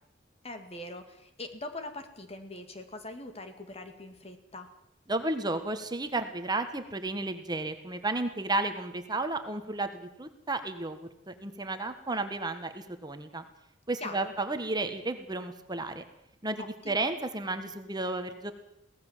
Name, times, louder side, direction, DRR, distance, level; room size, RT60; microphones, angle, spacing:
voice 1, 0.4-4.7 14.0-14.3 16.6-17.0, left 2 dB, 35° left, 7 dB, 2.3 m, -42 dB
voice 2, 5.1-11.0 11.3-13.4 13.9-16.0 16.4-18.5, right 2 dB, 20° right, 7 dB, 1.5 m, -33 dB
23.0 x 17.5 x 7.3 m, 0.79 s
head